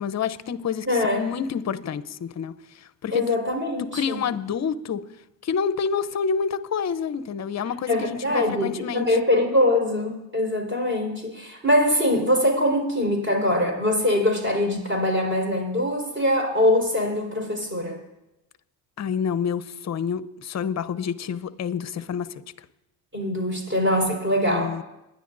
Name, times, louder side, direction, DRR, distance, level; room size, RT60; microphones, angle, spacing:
voice 1, 0.0-3.3 3.8-5.1 5.4-9.2 19.0-22.4 24.5-24.8, left 6 dB, 35° left, 0.7 m, -28 dB
voice 2, 0.9-1.3 3.1-4.2 7.9-18.0 23.1-24.7, left 1 dB, 25° right, 4.4 m, -23 dB
22.0 x 10.5 x 2.6 m
supercardioid pair, 85°, 45 cm